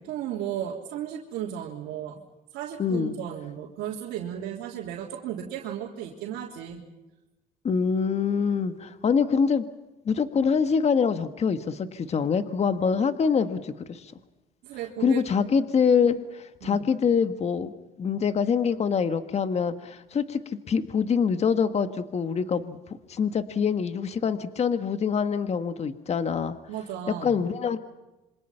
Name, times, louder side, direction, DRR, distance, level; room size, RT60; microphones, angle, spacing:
voice 1, 0.1-2.2 2.5-6.9 14.6-15.2 16.6-16.8 26.7-27.4, right 10 dB, 90° right, -3 dB, 3.4 m, -35 dB
voice 2, 2.8-3.2 7.6-9.7 10.1-14.1 15.0-17.7 18.0-20.4 20.7-22.8 23.1-26.6 27.2-27.8, left 6 dB, 40° left, 10 dB, 1.6 m, -25 dB
27.0 x 25.5 x 5.8 m, 1.1 s
cardioid pair, 110°, 17 cm